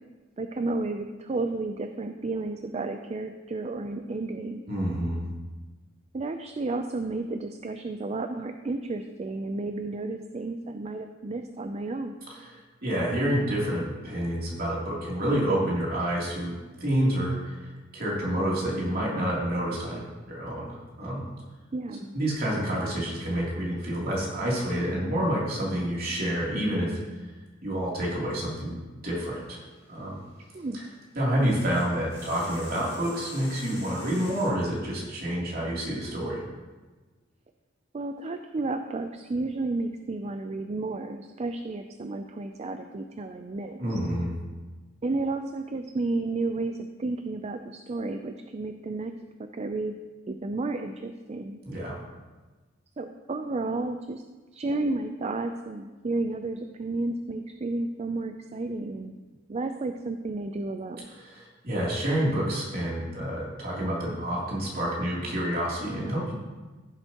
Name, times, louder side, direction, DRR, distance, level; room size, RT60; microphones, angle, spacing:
voice 1, 0.4-4.6 6.1-12.2 21.7-22.1 30.5-30.8 37.9-44.0 45.0-49.1 49.4-49.9 50.3-51.6 53.0-54.2 54.5-59.2 59.5-61.1, right 2 dB, 35° right, 7 dB, 0.4 m, -32 dB
voice 2, 4.7-5.2 12.8-17.6 17.9-20.0 20.3-21.2 22.1-27.0 27.6-29.6 29.9-30.2 30.7-30.8 31.1-36.4 43.8-44.3 51.6-52.0 61.2-66.3, right 1 dB, 50° right, -5 dB, 3.1 m, -28 dB
sound 1, 29.3-34.5, left 2 dB, 30° left, 3.2 m, -47 dB
14.5 x 7.7 x 3.0 m, 1.3 s
head